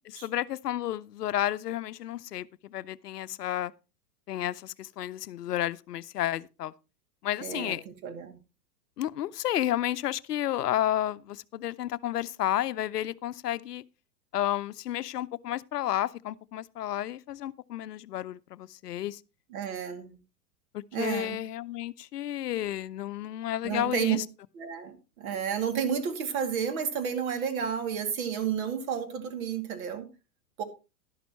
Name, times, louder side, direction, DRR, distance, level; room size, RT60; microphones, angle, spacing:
voice 1, 0.0-3.7 4.3-6.7 7.2-7.8 9.0-13.8 14.3-19.2 20.7-24.2, left 12 dB, 70° left, 0.7 m, -31 dB
voice 2, 7.4-7.8 8.0-8.4 19.5-20.2 20.9-21.4 23.6-24.2 24.5-30.1 30.6-30.7, right 7 dB, 55° right, 2.4 m, -31 dB
12.0 x 11.0 x 3.0 m
figure-of-eight pair, 100°, 49 cm